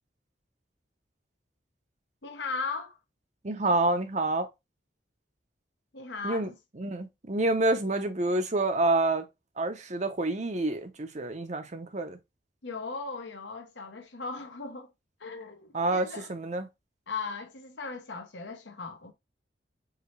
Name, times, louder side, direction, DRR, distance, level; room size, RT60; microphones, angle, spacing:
voice 1, 2.2-3.0 5.9-6.5 12.6-14.9 15.2-16.3 17.1-19.1, left 4 dB, 70° left, 1.0 m, -37 dB
voice 2, 3.4-4.5 6.2-6.5 6.8-9.3 9.6-12.2 15.7-16.7, right 2 dB, 40° right, 0.7 m, -28 dB
4.8 x 2.8 x 3.2 m
head